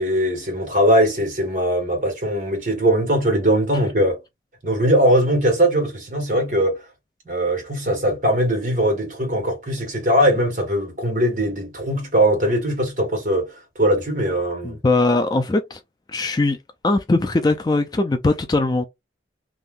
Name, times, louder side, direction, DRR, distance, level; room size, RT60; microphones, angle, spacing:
voice 1, 0.0-4.2 4.6-6.8 7.2-14.8, equal, 45° right, 1.4 m, -20 dB
voice 2, 14.6-15.8 16.1-16.6 16.8-18.8, left 2 dB, 20° left, 0.3 m, -20 dB
2.7 x 2.4 x 3.5 m
head